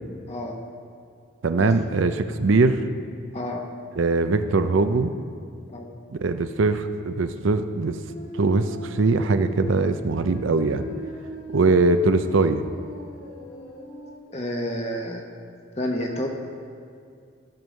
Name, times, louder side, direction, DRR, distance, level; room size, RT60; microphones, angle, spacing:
voice 1, 0.3-0.6 1.6-1.7 3.3-3.6 5.7-5.8 14.3-15.2 15.8-16.3, left 1 dB, 30° left, 1 dB, 1.2 m, -29 dB
voice 2, 1.4-2.8 4.0-5.1 6.2-8.0 8.3-10.8 11.5-12.6, right 3 dB, 75° right, 9 dB, 0.5 m, -21 dB
sound 1, 8.1-14.2, equal, 70° left, 2.0 m, -39 dB
15.0 x 5.4 x 6.4 m, 2.3 s
head